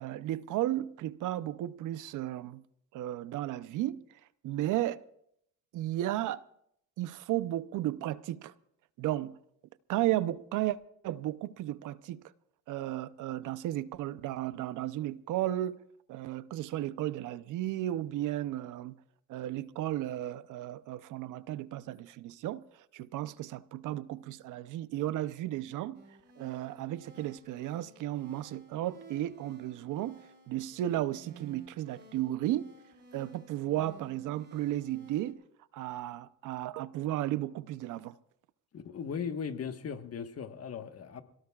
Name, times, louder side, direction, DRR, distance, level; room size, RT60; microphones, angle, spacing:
voice 1, 0.0-2.6 2.9-4.0 4.4-5.0 5.7-6.4 7.0-8.5 9.0-9.4 9.9-10.8 11.0-12.2 12.7-15.8 16.1-19.0 19.3-22.6 22.9-26.0 26.4-30.2 30.5-32.7 33.1-35.4 35.7-38.2, right 14 dB, 85° right, 0.7 m, -34 dB
sound 1, 25.9-35.3, right 2 dB, 35° right, 5.1 m, -55 dB
voice 2, 38.7-41.2, left 6 dB, 55° left, 1.4 m, -38 dB
27.0 x 17.5 x 2.4 m
cardioid pair, 90°, 30 cm